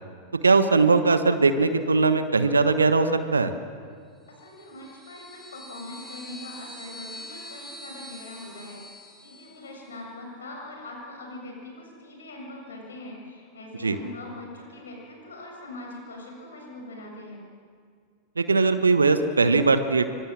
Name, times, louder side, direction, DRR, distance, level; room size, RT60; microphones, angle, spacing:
voice 1, 0.4-3.5 13.8-14.0 18.4-20.1, right 3 dB, 75° right, 10 dB, 1.3 m, -20 dB
voice 2, 4.3-8.8 9.2-17.4, left 2 dB, 70° left, 1 dB, 7.3 m, -42 dB
sound 1, 4.4-9.8, equal, 20° left, 5.5 m, -44 dB
25.0 x 24.0 x 7.6 m, 2.1 s
figure-of-eight pair, 90°, 0 cm